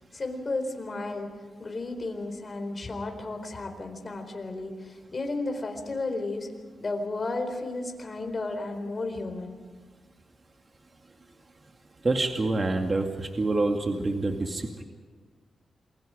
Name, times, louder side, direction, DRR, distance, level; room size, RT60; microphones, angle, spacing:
voice 1, 0.1-1.3 1.6-6.5 6.8-9.5, left 2 dB, 40° left, 5 dB, 4.3 m, -33 dB
voice 2, 12.0-14.8, right 2 dB, 35° right, 3 dB, 2.1 m, -27 dB
28.0 x 22.0 x 5.1 m, 1.5 s
cardioid pair, 85°, 0 cm